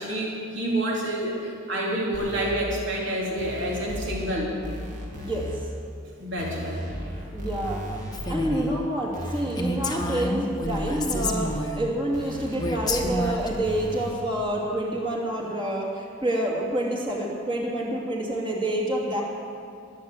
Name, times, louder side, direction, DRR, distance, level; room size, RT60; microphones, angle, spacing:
voice 1, 0.0-4.5 6.2-6.8, right 1 dB, 60° right, -3 dB, 4.0 m, -28 dB
sound 1, 2.1-2.5 3.4-4.4 4.6-5.6 6.4-8.5 9.1-10.2 10.6-11.6 12.1-14.1, equal, 40° right, 2.7 m, -35 dB
voice 2, 5.1-5.5 7.3-7.9 8.3-19.2, right 1 dB, 25° right, -2 dB, 2.7 m, -28 dB
Female speech woman speaking, 8.1-8.7 9.2-9.3 9.6-11.9 12.6-13.5, left 1 dB, 20° left, 1.1 m, -29 dB
21.0 x 7.7 x 8.1 m, 2.5 s
head